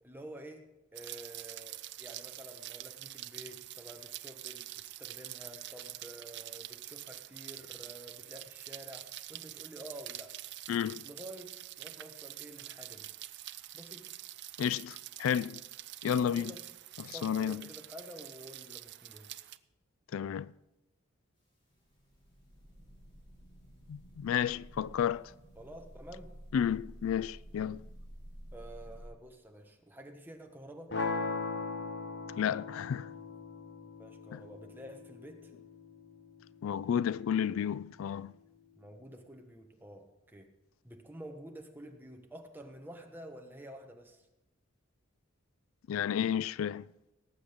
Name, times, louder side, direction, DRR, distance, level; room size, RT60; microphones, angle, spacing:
voice 1, 0.0-0.7 0.9-10.3 11.0-13.1 13.7-14.1 16.2-16.6 17.1-19.3 25.6-26.3 28.5-30.9 34.0-35.5 38.8-40.5 40.8-44.2, right 1 dB, 10° right, 1.2 m, -49 dB
Rain, 1.0-19.6, right 14 dB, 55° right, 0.5 m, -46 dB
voice 2, 10.7-11.0 14.6-15.6 16.0-16.5 17.0-17.6 20.1-20.5 23.9-25.3 26.5-27.8 32.4-33.1 34.3-34.4 36.6-38.3 45.9-46.8, left 8 dB, 85° left, 0.3 m, -32 dB
sound 1, 21.7-29.1, equal, 25° left, 3.0 m, -51 dB
sound 2, 30.9-36.9, left 3 dB, 55° left, 1.1 m, -39 dB
18.5 x 7.8 x 5.1 m
head